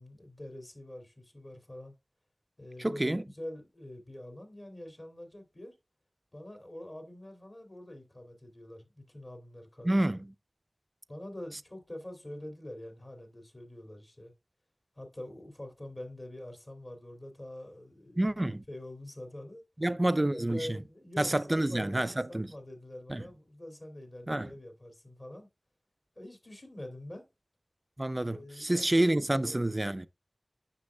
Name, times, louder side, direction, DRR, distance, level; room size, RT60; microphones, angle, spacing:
voice 1, 0.0-1.9 2.6-5.7 6.3-10.0 11.1-14.3 15.0-18.3 18.7-19.6 20.3-25.5 26.2-27.3 28.3-29.7, left 1 dB, 45° left, 2.6 m, -45 dB
voice 2, 2.8-3.2 9.8-10.3 18.2-18.6 19.8-20.8 21.2-22.5 23.1-23.2 24.3-24.5 28.0-30.1, right 1 dB, 30° right, 0.4 m, -28 dB
9.6 x 6.1 x 2.2 m
wide cardioid pair, 50°, 0 cm